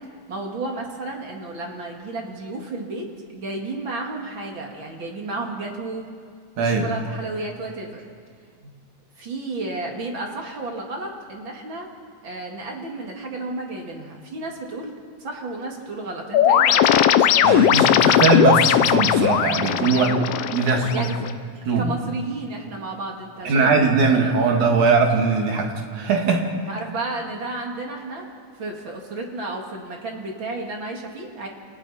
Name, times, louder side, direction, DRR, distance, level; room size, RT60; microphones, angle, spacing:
voice 1, 0.3-6.0 6.6-8.0 9.2-11.9 12.2-14.9 15.2-16.9 19.9-20.3 20.9-21.3 21.8-23.9 26.7-28.3 28.5-31.5, right 2 dB, 40° right, 0 dB, 2.7 m, -32 dB
voice 2, 6.6-6.9 17.4-20.2 20.5-21.1 21.7-21.9 23.4-26.4, right 4 dB, 75° right, 2 dB, 3.3 m, -20 dB
sound 1, 16.3-21.3, left 10 dB, 75° left, 1.5 m, -18 dB
29.0 x 26.0 x 4.3 m, 2.1 s
omnidirectional pair, 3.5 m